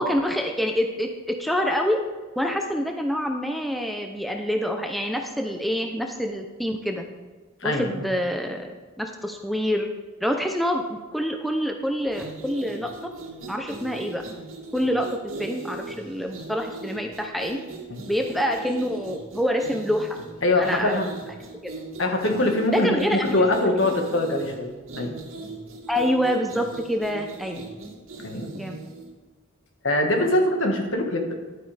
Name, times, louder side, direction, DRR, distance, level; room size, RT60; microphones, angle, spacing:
voice 1, 0.0-2.0 2.4-7.0 7.6-9.9 10.2-12.9 13.5-14.2 14.7-15.1 15.4-17.6 18.1-20.1 20.6-21.1 21.6-21.7 22.7-23.3 25.9-27.6 28.5-28.8, equal, ahead, 3 dB, 0.6 m, -26 dB
voice 2, 7.6-8.0 17.9-18.0 20.4-21.1 22.0-25.1 28.2-28.5 29.8-31.4, left 1 dB, 65° left, 3 dB, 1.6 m, -23 dB
sound 1, 12.0-29.1, right 3 dB, 85° right, 2.1 m, -39 dB
11.0 x 9.2 x 3.4 m, 1.3 s
head